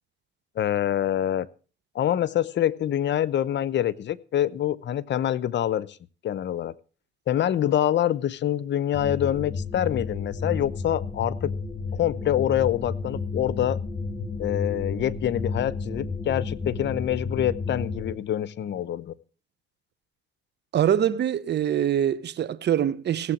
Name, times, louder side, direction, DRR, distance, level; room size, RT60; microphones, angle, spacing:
voice 1, 0.6-1.5 1.9-5.9 6.2-6.7 7.3-11.5 11.9-13.8 14.4-19.1, left 11 dB, 65° left, 0.9 m, -25 dB
sound 1, 8.9-18.1, left 4 dB, 40° left, 6.7 m, -32 dB
voice 2, 20.7-23.3, right 10 dB, 60° right, 0.9 m, -24 dB
16.5 x 7.9 x 7.5 m
cardioid pair, 90°, 20 cm